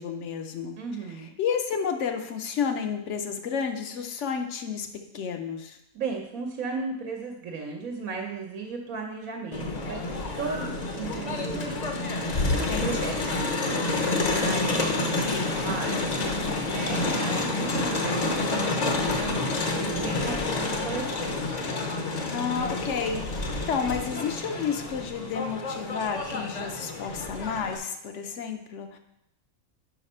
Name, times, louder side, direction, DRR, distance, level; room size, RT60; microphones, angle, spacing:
voice 1, 0.0-0.8 1.4-4.9 5.1-5.8 12.7-13.1 22.3-29.0, left 6 dB, 65° left, 6 dB, 0.9 m, -31 dB
voice 2, 0.8-1.3 5.9-10.0 10.4-11.7 12.1-21.4, right 4 dB, 85° right, 2 dB, 1.2 m, -36 dB
Crowd, 9.5-27.8, left 2 dB, 40° left, 0.6 m, -29 dB
5.1 x 4.9 x 5.4 m, 0.82 s
omnidirectional pair, 1.4 m